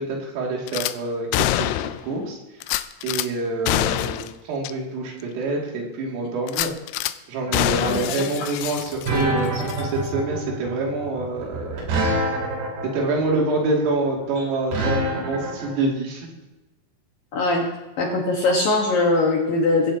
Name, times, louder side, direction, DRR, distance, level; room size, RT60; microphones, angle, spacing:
voice 1, 0.0-1.7 2.0-2.4 3.0-6.7 7.3-12.0 12.9-16.3, right 3 dB, 75° right, -2 dB, 5.1 m, -26 dB
Gunshot gunfire / Glass, 0.7-0.9 1.3-2.1 2.6-3.3 3.7-4.3 4.6-4.7 5.2-5.3 6.5-7.1 7.5-9.3 9.7-9.8, left 14 dB, 85° left, 2.7 m, -25 dB
sound 1, 7.5-15.7, right 1 dB, 55° right, 5.0 m, -26 dB
voice 2, 7.8-8.3 17.3-17.7 18.0-19.9, left 2 dB, 65° left, -1 dB, 2.5 m, -21 dB
22.5 x 15.5 x 2.9 m, 1.1 s
omnidirectional pair, 5.9 m